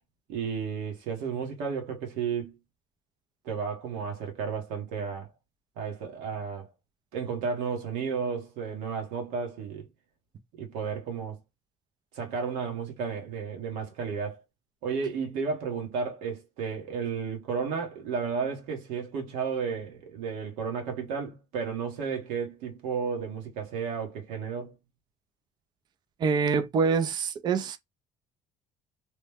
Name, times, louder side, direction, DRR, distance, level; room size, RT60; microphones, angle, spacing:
voice 1, 0.3-2.6 3.4-5.3 5.8-6.7 7.1-9.9 10.5-11.4 12.1-14.4 14.8-24.7, right 6 dB, 85° right, 1.1 m, -33 dB
voice 2, 26.2-27.8, right 5 dB, 35° right, 0.4 m, -25 dB
3.0 x 2.1 x 3.3 m
cardioid pair, 140°, 12 cm